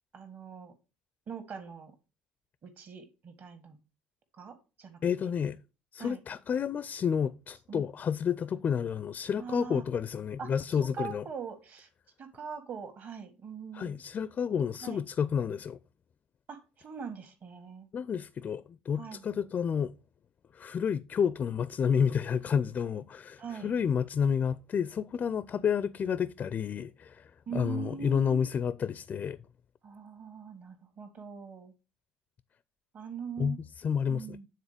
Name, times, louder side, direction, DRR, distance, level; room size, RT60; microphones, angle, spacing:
voice 1, 0.1-0.7 1.3-1.9 2.6-3.8 4.4-5.0 6.0-6.2 7.7-7.8 9.4-9.9 10.4-11.9 12.2-14.0 14.8-15.0 16.5-17.9 19.0-19.3 23.4-23.8 27.5-28.5 29.8-31.7 32.9-33.6 34.1-34.5, right 6 dB, 45° right, 1.8 m, -42 dB
voice 2, 5.0-5.6 5.9-11.2 13.7-15.8 17.9-19.9 20.5-29.4 33.4-34.4, left 7 dB, 35° left, 0.5 m, -30 dB
9.3 x 4.0 x 5.0 m
hypercardioid pair, 60°, 5 cm